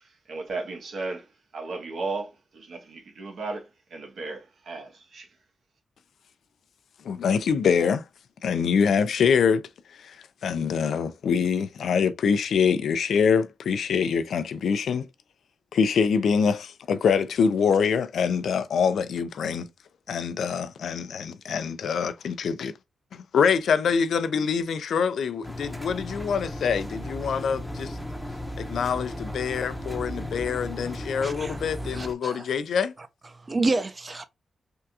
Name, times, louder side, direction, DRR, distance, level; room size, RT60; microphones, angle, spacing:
voice 1, 0.0-1.3 1.5-5.3, right 3 dB, 75° right, 1.1 m, -35 dB
voice 2, 7.0-8.0 8.4-9.6 9.9-10.2 10.4-15.1 15.7-19.7 20.1-22.7 23.1-28.0 28.6-32.9, left 6 dB, 85° left, 0.4 m, -25 dB
Engine, 25.4-32.1, left 1 dB, 5° left, 0.7 m, -35 dB
voice 3, 31.2-31.6 31.9-32.4 33.5-34.2, right 3 dB, 35° right, 0.5 m, -28 dB
3.4 x 2.3 x 2.8 m
cardioid pair, 90°, 0 cm